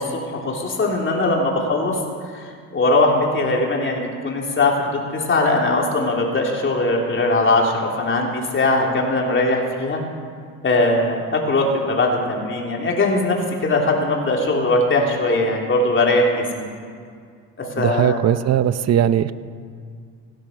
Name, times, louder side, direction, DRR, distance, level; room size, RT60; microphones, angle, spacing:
voice 1, 0.0-2.0 2.3-2.4 2.7-10.0 10.6-16.7 17.8-18.2, left 2 dB, 30° left, 0 dB, 3.2 m, -20 dB
voice 2, 17.8-19.3, right 10 dB, 45° right, 15 dB, 0.7 m, -19 dB
16.5 x 10.5 x 6.4 m, 2.1 s
supercardioid pair, 95°, 37 cm